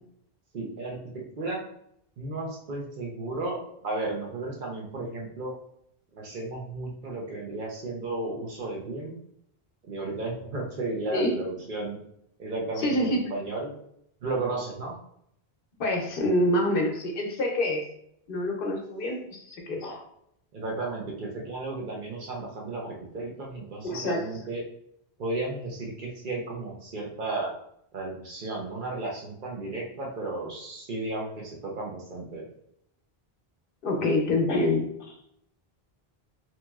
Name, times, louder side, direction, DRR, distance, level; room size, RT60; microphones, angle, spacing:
voice 1, 0.5-1.6 2.2-3.6 3.8-5.5 6.1-9.1 9.8-12.0 12.4-13.7 14.2-14.9 20.5-24.6 25.2-27.5 27.9-32.4, right 2 dB, 60° right, -1 dB, 0.8 m, -34 dB
voice 2, 12.8-13.2 15.8-17.8 18.3-20.0 23.8-24.2 33.8-34.9, left 1 dB, 65° left, 1 dB, 0.8 m, -26 dB
2.9 x 2.7 x 2.2 m, 0.72 s
omnidirectional pair, 1.0 m